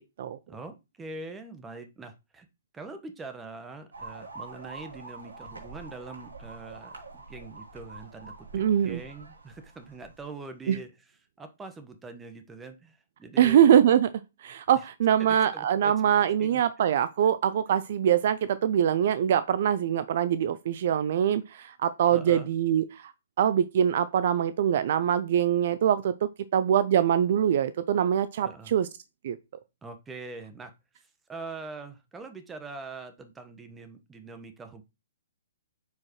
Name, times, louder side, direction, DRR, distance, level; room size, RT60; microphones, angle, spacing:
voice 1, 0.5-2.5 2.7-10.9 11.4-13.6 14.7-14.8 15.2-15.9 16.4-16.6 22.1-22.5 28.4-28.7 29.8-30.7 31.3-34.8, right 3 dB, 10° right, 1.3 m, -43 dB
sound 1, 3.9-10.3, right 3 dB, 75° right, 2.6 m, -45 dB
voice 2, 8.5-9.0 10.7-10.8 13.4-14.1 14.4-23.1 23.4-28.9 29.2-29.4, right 9 dB, 50° right, 0.5 m, -23 dB
9.3 x 4.9 x 3.1 m
figure-of-eight pair, 125°, 0 cm